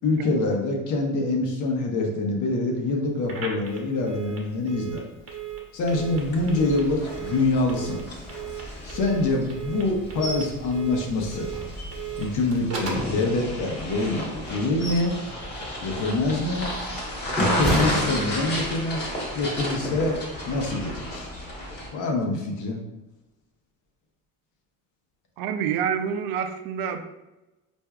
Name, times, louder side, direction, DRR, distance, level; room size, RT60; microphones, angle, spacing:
voice 1, 0.0-5.0 5.7-8.0 8.8-11.5 12.2-15.2 15.8-16.7 17.4-20.2 20.5-21.3 21.9-22.8, left 2 dB, 60° left, 1 dB, 0.8 m, -25 dB
Telephone, 3.2-13.1, right 7 dB, 45° right, 0.9 m, -37 dB
sound 1, 5.8-21.9, equal, 30° left, 1.1 m, -33 dB
sound 2, 10.2-10.5 10.9-11.0 11.5-12.3 12.8-13.8 14.4-15.2 15.6-15.8 16.4-18.8 19.2-19.4, right 1 dB, ahead, 0.9 m, -30 dB
voice 2, 25.4-27.1, right 8 dB, 70° right, 7 dB, 0.5 m, -28 dB
4.4 x 2.6 x 2.3 m, 1.0 s
cardioid pair, 115°, 34 cm